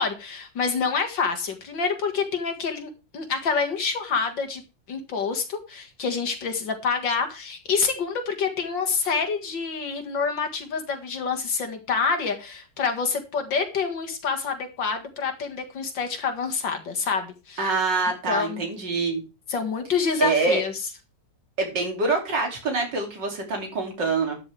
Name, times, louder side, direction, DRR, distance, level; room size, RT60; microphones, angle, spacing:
voice 1, 0.0-4.6 4.9-17.7 18.3-18.6 19.5-20.7, left 5 dB, 85° left, 5 dB, 2.6 m, -27 dB
voice 2, 17.6-19.2 20.2-20.6 21.6-24.4, right 3 dB, 75° right, 2 dB, 3.6 m, -25 dB
12.5 x 9.9 x 3.5 m, 0.29 s
omnidirectional pair, 1.9 m